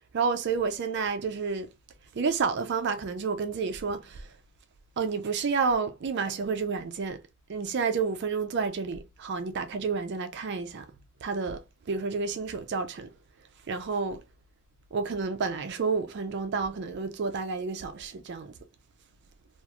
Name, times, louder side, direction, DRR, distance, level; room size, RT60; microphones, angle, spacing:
voice 1, 0.1-1.7 2.1-4.2 5.0-7.2 7.5-10.8 11.2-11.6 11.9-13.1 13.7-14.2 14.9-18.5, right 5 dB, 50° right, 0.4 m, -30 dB
3.0 x 2.4 x 2.3 m
head